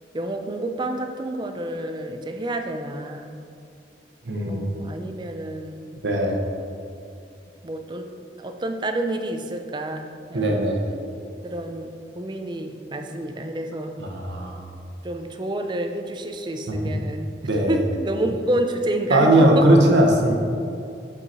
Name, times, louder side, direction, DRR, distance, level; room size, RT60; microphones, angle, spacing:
voice 1, 0.1-3.4 4.4-6.0 7.6-8.1 8.4-10.6 11.4-14.0 15.0-17.3 17.7-19.7, right 1 dB, 25° right, 5 dB, 0.4 m, -29 dB
voice 2, 4.3-4.7 6.0-6.4 10.3-10.8 14.0-14.6 16.7-16.8 17.4-17.8 19.1-20.3, right 1 dB, 90° right, 1 dB, 1.0 m, -19 dB
7.6 x 4.8 x 4.2 m, 2.5 s
head